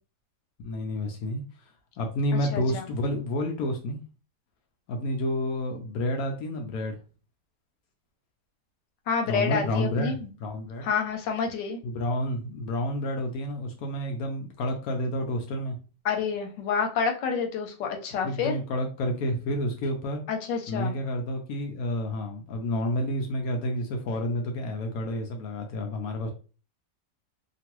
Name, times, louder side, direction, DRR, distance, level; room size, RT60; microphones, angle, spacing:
voice 1, 0.6-1.4 2.0-4.0 4.9-7.0 9.3-10.1 10.4-10.9 11.8-15.8 18.2-20.2 20.7-26.3, left 1 dB, 70° left, 3 dB, 0.9 m, -29 dB
voice 2, 2.5-2.8 9.1-10.3 10.8-11.8 16.0-18.6 20.3-20.9, left 6 dB, 90° left, 4 dB, 1.3 m, -28 dB
2.9 x 2.5 x 2.9 m, 0.36 s
omnidirectional pair, 1.8 m